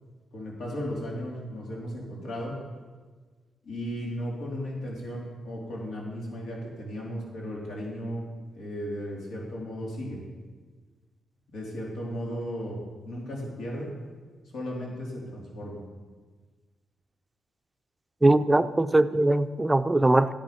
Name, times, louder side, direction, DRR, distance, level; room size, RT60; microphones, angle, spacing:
voice 1, 0.3-2.6 3.6-8.3 8.5-10.2 11.5-12.8 13.1-13.9 14.5-15.8, equal, 85° left, -3 dB, 3.4 m, -35 dB
voice 2, 18.2-20.3, right 2 dB, 15° right, 11 dB, 0.5 m, -21 dB
13.5 x 9.1 x 5.9 m, 1.4 s
cardioid pair, 115°, 0 cm